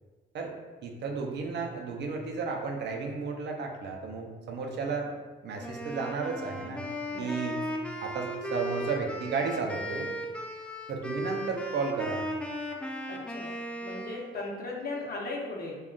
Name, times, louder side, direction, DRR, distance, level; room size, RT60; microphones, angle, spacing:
voice 1, 0.8-5.1 5.4-6.8 7.2-7.6 8.0-10.1 10.9-12.2, right 4 dB, 60° right, 2 dB, 0.5 m, -33 dB
Wind instrument woodwind instrument, 5.6-14.4, equal, 5° left, 0.3 m, -36 dB
voice 2, 7.1-7.5 13.1-13.5 13.8-15.8, left 2 dB, 50° left, -2 dB, 0.8 m, -37 dB
3.6 x 2.3 x 2.3 m, 1.3 s
cardioid pair, 90°, 20 cm